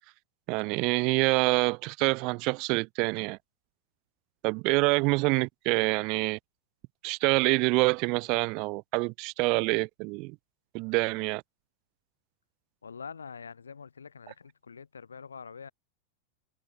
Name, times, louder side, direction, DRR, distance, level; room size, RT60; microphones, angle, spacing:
voice 1, 0.5-3.4 4.4-6.4 7.0-10.4 10.7-11.4, right 28 dB, 45° right, 1.3 m, -26 dB
voice 2, 12.8-15.7, left 6 dB, 75° left, 3.1 m, -45 dB
figure-of-eight pair, 90°, 0 cm